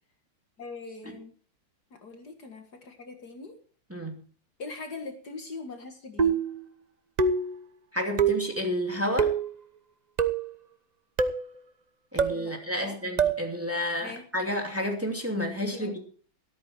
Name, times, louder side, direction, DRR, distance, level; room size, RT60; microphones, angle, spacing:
voice 1, 0.6-1.3 1.9-3.6 4.6-6.4 12.2-13.0 14.0-14.2 15.7-16.0, left 3 dB, 55° left, 6 dB, 2.3 m, -42 dB
sound 1, 6.2-6.6 7.2-7.6 8.2-8.5 9.2-9.5 10.2-10.5 11.2-11.5 12.2-12.4 13.2-13.4, right 5 dB, 65° right, 0.4 m, -25 dB
voice 2, 7.9-9.3 12.1-16.0, equal, 5° right, 3 dB, 2.5 m, -30 dB
13.5 x 13.0 x 4.5 m, 0.42 s
omnidirectional pair, 2.2 m